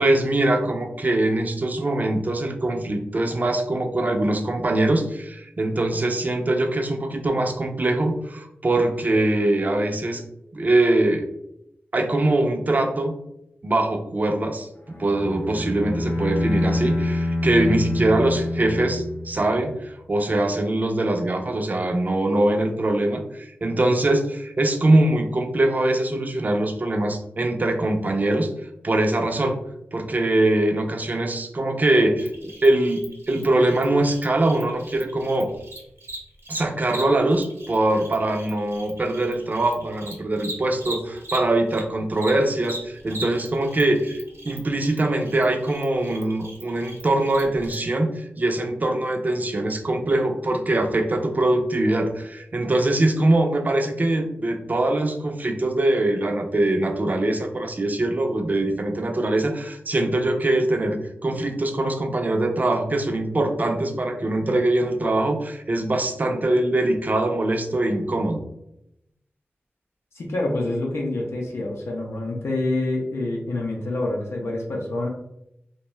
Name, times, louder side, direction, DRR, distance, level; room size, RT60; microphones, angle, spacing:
voice 1, 0.0-10.2 10.5-11.3 11.9-13.1 13.6-14.7 15.0-28.5 28.8-29.6 29.9-35.5 36.5-68.4, right 2 dB, 40° right, 4 dB, 0.4 m, -22 dB
Bowed string instrument, 14.9-19.7, left 1 dB, 50° left, 0.7 m, -26 dB
Cricket, 32.2-41.8 42.1-47.7, right 1 dB, 80° right, 0.8 m, -39 dB
voice 2, 70.1-75.1, left 2 dB, 90° left, -1 dB, 0.5 m, -27 dB
2.5 x 2.2 x 3.0 m, 0.81 s
wide cardioid pair, 70°, 4 cm